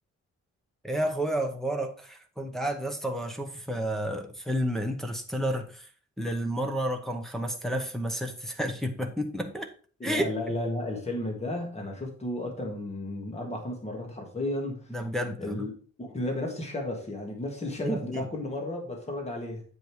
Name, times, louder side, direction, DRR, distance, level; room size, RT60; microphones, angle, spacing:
voice 1, 0.8-5.9 6.2-9.7 10.0-10.3 14.9-15.7 17.8-18.3, equal, ahead, 0.8 m, -31 dB
voice 2, 10.0-15.0 15.4-15.7 16.0-19.6, left 1 dB, 20° left, 1.7 m, -33 dB
7.9 x 5.2 x 4.5 m
wide cardioid pair, 180°, 29 cm